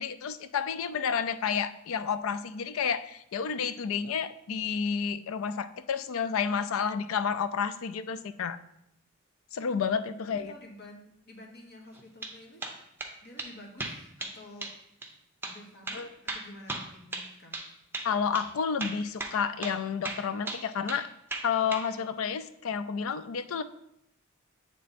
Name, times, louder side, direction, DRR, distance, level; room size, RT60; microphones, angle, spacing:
voice 1, 0.0-8.6 9.5-10.5 15.9-16.1 18.0-21.1 21.4-23.6, left 6 dB, 75° left, 13 dB, 0.4 m, -30 dB
voice 2, 9.9-12.8 13.2-14.7 15.4-17.7, left 1 dB, 50° left, 0 dB, 1.3 m, -50 dB
sound 1, 11.9-12.3 12.6-13.1 13.4-13.5 13.8-14.4 14.6-14.8 15.0-15.1 15.4-15.6 15.9-17.7 17.9-18.1 18.3-18.5 18.8-19.4 19.6-19.8 20.0-21.0 21.3-21.9, right 3 dB, 10° right, 0.6 m, -36 dB
8.4 x 3.4 x 4.1 m, 0.78 s
head